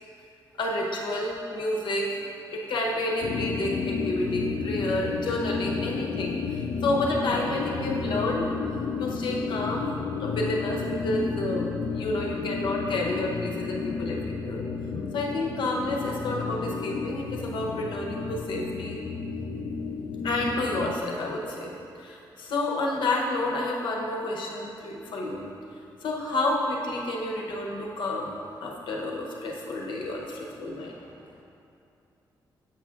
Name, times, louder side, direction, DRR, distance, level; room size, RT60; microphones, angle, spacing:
voice 1, 0.6-2.2 2.5-8.5 9.0-14.6 14.9-19.0 20.2-25.5 26.0-28.3 28.6-31.0, left 2 dB, 75° left, -1 dB, 0.9 m, -30 dB
sound 1, 3.2-21.0, left 5 dB, 60° left, 0.4 m, -32 dB
voice 2, 30.6-31.4, left 1 dB, 15° left, -7 dB, 0.8 m, -57 dB
7.7 x 5.7 x 2.5 m, 2.7 s
wide cardioid pair, 130°, 8 cm